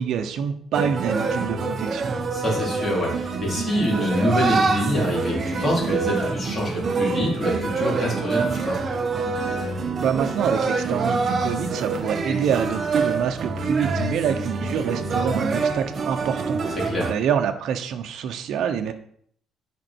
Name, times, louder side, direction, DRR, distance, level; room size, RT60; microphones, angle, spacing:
voice 1, 0.0-2.2 10.0-18.9, right 8 dB, 65° right, 6 dB, 0.9 m, -26 dB
sound 1, 0.7-17.1, right 4 dB, 35° right, 0.9 m, -26 dB
voice 2, 2.3-8.8 16.8-17.1, equal, 25° left, -4 dB, 3.6 m, -25 dB
9.6 x 5.3 x 4.5 m, 0.63 s
cardioid pair, 135°, 0 cm